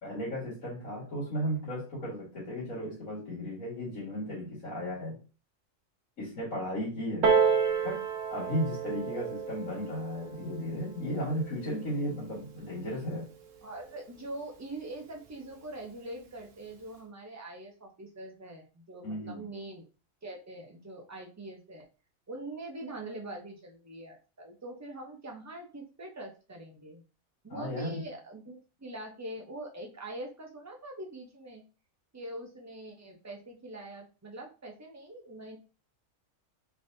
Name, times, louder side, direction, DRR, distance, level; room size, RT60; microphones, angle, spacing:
voice 1, 0.0-5.2 6.2-7.3 7.8-8.0 8.3-13.3 19.0-19.5 27.5-28.1, equal, 80° left, -6 dB, 2.2 m, -35 dB
Piano, 7.2-12.4 13.2-13.3, right 6 dB, 70° right, 1.0 m, -30 dB
voice 2, 13.6-19.9 20.2-21.9 22.3-27.0 27.4-31.6 32.1-35.6, right 1 dB, 25° right, 1 dB, 0.4 m, -43 dB
3.8 x 3.4 x 2.6 m, 0.34 s
omnidirectional pair, 1.4 m